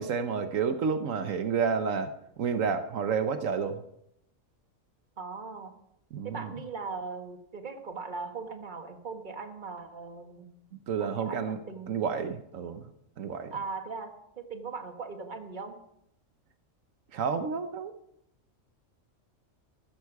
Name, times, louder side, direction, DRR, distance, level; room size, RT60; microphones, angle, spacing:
voice 1, 0.0-3.8 6.1-6.5 10.9-11.6 11.9-12.8 13.2-13.5 17.1-17.9, right 6 dB, 80° right, 9 dB, 1.3 m, -30 dB
voice 2, 5.2-5.8 6.2-10.5 11.0-12.0 13.5-15.8, right 4 dB, 40° right, 5 dB, 1.7 m, -39 dB
14.0 x 14.0 x 4.8 m, 0.77 s
omnidirectional pair, 1.3 m